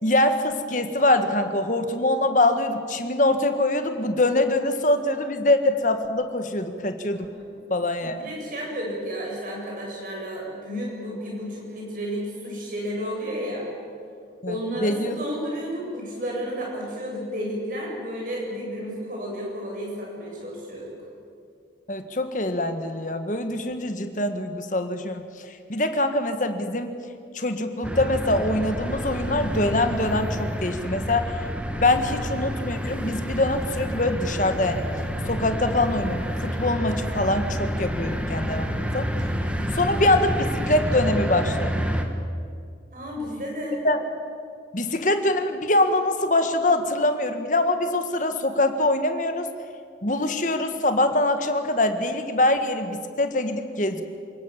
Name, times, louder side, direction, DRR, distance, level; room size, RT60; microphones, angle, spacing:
voice 1, 0.0-7.2 7.7-8.2 14.4-14.5 14.8-15.2 21.9-26.9 27.3-31.4 31.7-34.8 35.3-39.1 39.7-40.3 40.7-41.8 43.8-44.0 44.7-49.5 50.0-54.0, left 2 dB, 45° left, 7 dB, 1.7 m, -24 dB
voice 2, 7.1-7.6 8.0-13.7 14.5-20.9 39.5-39.8 42.9-43.8, equal, 45° right, -3 dB, 7.8 m, -32 dB
sound 1, 27.8-42.0, equal, 5° right, 1.5 m, -29 dB
27.5 x 18.0 x 7.4 m, 2.3 s
head